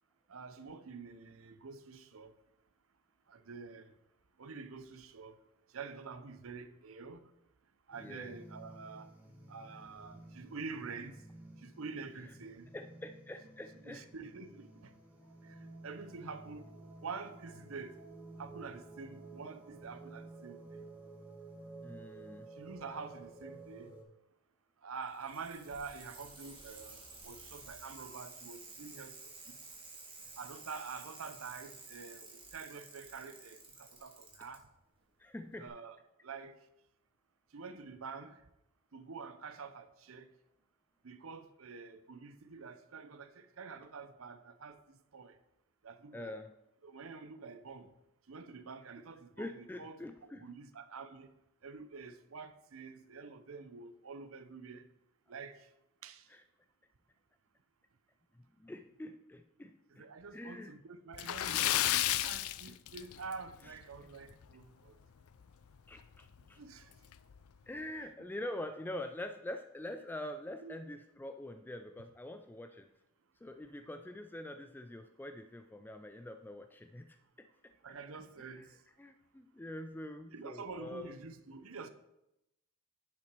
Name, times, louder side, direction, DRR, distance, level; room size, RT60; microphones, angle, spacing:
voice 1, 0.3-2.3 3.3-3.9 4.4-5.4 5.7-7.3 7.9-9.1 9.5-11.2 11.6-12.7 13.8-14.9 15.4-16.7 17.0-18.0 18.4-20.8 22.6-23.9 24.8-29.6 30.4-34.6 35.6-36.0 36.2-36.6 37.5-38.4 38.9-40.3 41.0-45.4 45.8-46.4 46.8-47.9 48.3-50.0 50.4-51.3 51.6-54.9 55.3-55.7 56.0-56.3 59.9-61.8 62.2-65.0 66.4-66.9 70.6-70.8 77.8-78.8 80.3-81.9, right 4 dB, 70° right, 0.7 m, -47 dB
sound 1, 7.9-24.0, right 2 dB, 10° right, 1.6 m, -53 dB
voice 2, 8.0-8.3 12.7-14.0 21.8-22.5 35.2-35.7 46.1-46.5 49.4-50.5 56.3-56.4 58.3-60.1 60.3-60.7 63.6-64.1 65.9-66.6 67.7-72.9 73.4-77.5 78.4-78.7 79.0-81.1, left 1 dB, 10° left, 0.3 m, -45 dB
Bicycle, 25.0-34.6 35.7-35.8, right 3 dB, 25° right, 2.2 m, -52 dB
Splash splatter, 61.1-63.5 63.8-64.0 64.4-64.5 66.0-66.1 66.4-66.5 67.1-67.4, left 13 dB, 85° left, 0.4 m, -32 dB
10.5 x 5.9 x 4.6 m
head